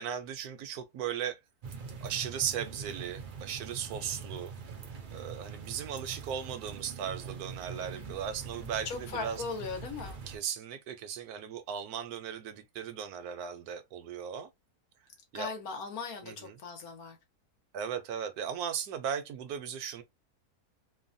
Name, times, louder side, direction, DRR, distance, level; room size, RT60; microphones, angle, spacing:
voice 1, 0.0-1.4 2.0-4.5 5.1-9.4 10.3-14.5 15.3-15.5 16.2-16.5 17.7-20.0, right 8 dB, 75° right, 1.1 m, -37 dB
sound 1, 1.6-10.4, right 5 dB, 55° right, 0.5 m, -43 dB
voice 2, 7.7-8.2 8.8-10.2 15.3-17.2, left 5 dB, 70° left, 1.3 m, -39 dB
3.1 x 2.1 x 2.6 m
omnidirectional pair, 1.6 m